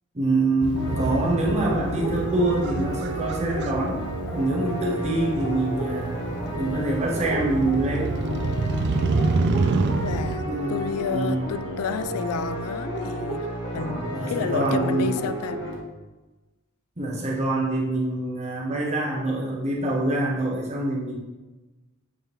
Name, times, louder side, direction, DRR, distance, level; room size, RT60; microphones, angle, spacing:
voice 1, 0.1-4.0 4.3-6.2 6.6-8.2 10.4-10.8 11.1-11.4 13.7-15.2 17.0-21.2, right 2 dB, 30° right, -3 dB, 1.1 m, -25 dB
Motorcycle, 0.6-10.4, right 3 dB, 50° right, 0.4 m, -28 dB
sound 1, 0.7-15.7, equal, 55° left, 1.1 m, -31 dB
voice 2, 10.0-13.5 13.7-15.6, left 6 dB, 90° left, 13 dB, 0.3 m, -31 dB
8.4 x 3.7 x 3.1 m, 1.2 s
head